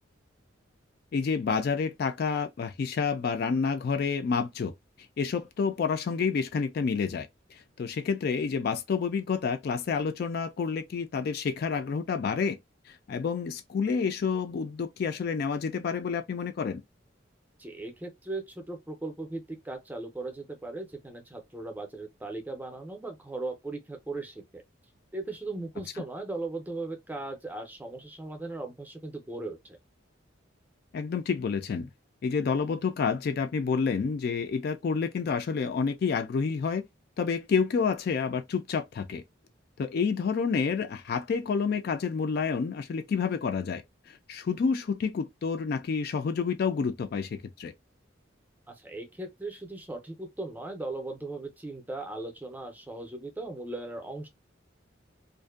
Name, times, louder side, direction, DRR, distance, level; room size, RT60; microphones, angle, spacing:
voice 1, 1.1-4.7 5.2-7.3 7.8-12.6 13.1-16.8 30.9-31.9 32.2-36.8 37.2-39.2 39.8-43.8 44.3-47.7, left 5 dB, 55° left, 0.3 m, -29 dB
voice 2, 17.6-24.6 25.1-29.8 48.7-54.3, right 2 dB, 10° right, 0.5 m, -38 dB
2.5 x 2.2 x 2.3 m
head